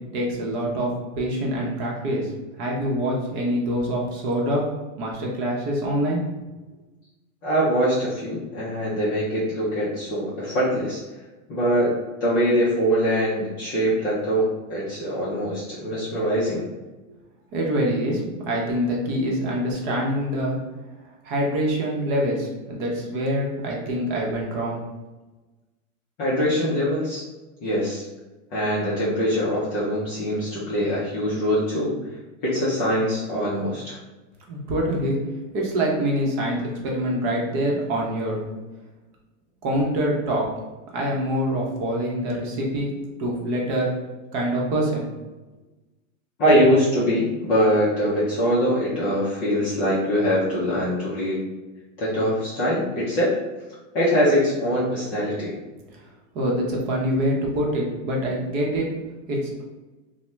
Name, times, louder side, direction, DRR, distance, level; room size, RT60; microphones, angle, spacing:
voice 1, 0.1-0.9 1.1-2.3 2.6-4.7 5.0-6.2 17.5-20.6 21.2-24.9 34.5-35.2 35.5-38.4 39.6-40.5 40.9-42.9 43.2-43.9 44.3-45.1 56.3-58.9 59.3-59.6, equal, 40° right, -2 dB, 0.7 m, -25 dB
voice 2, 7.4-11.0 11.5-11.9 12.2-16.7 26.2-27.2 27.6-28.1 28.5-31.9 32.4-34.0 46.4-51.4 52.0-53.3 53.9-55.5, equal, 25° left, -8 dB, 0.4 m, -23 dB
2.7 x 2.1 x 3.2 m, 1.2 s
supercardioid pair, 155°, 41 cm